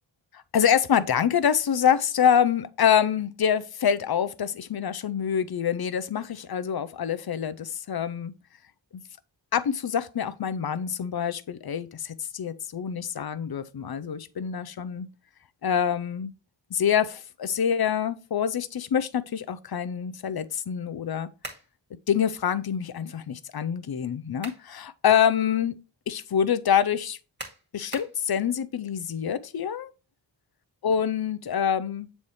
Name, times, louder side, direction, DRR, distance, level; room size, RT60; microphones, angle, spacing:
voice 1, 0.3-8.3 8.9-9.0 9.5-15.1 15.6-16.3 16.7-21.3 22.1-25.8 26.1-27.2 27.7-29.9 30.8-32.1, left 8 dB, 55° left, 0.6 m, -26 dB
sound 1, 21.4-21.7 24.1-24.7 25.2-25.3 27.4-28.2, right 1 dB, 25° right, 2.0 m, -40 dB
7.1 x 4.1 x 3.2 m
cardioid pair, 50°, 46 cm